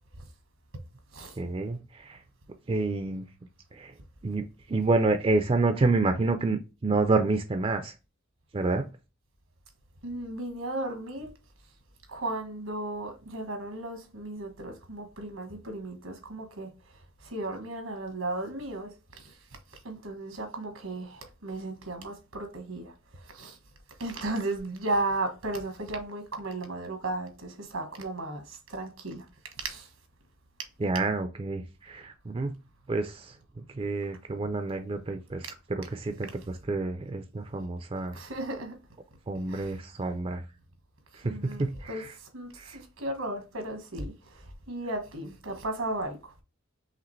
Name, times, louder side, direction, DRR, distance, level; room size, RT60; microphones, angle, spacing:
voice 1, 1.4-2.2 2.7-3.2 3.7-3.9 4.2-7.9 8.5-8.9 30.8-32.6 32.9-35.4 35.7-38.2 39.3-40.4 41.1-42.1 42.6-42.8, right 3 dB, 25° right, 0.4 m, -29 dB
voice 2, 10.0-11.3 12.1-19.4 19.8-23.6 24.0-29.3 29.6-29.9 38.1-38.8 39.5-39.8 41.2-46.4, right 2 dB, 80° right, 1.3 m, -35 dB
4.9 x 3.3 x 3.1 m
head